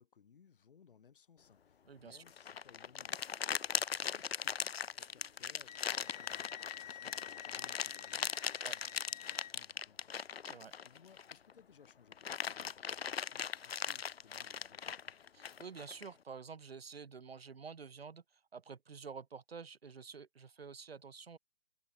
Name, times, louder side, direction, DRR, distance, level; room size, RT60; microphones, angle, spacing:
voice 1, 0.0-15.1, left 7 dB, 60° left, 8.0 m, -65 dB
voice 2, 1.9-2.2 8.6-8.8 10.5-10.7 15.3-18.2 18.5-21.4, right 5 dB, 80° right, 6.5 m, -49 dB
sound 1, 2.3-11.5 11.9-16.1, left 7 dB, 80° left, 1.2 m, -39 dB
Wind instrument woodwind instrument, 5.6-9.5, left 10 dB, 40° left, 1.4 m, -51 dB
hypercardioid pair, 165°, 30 cm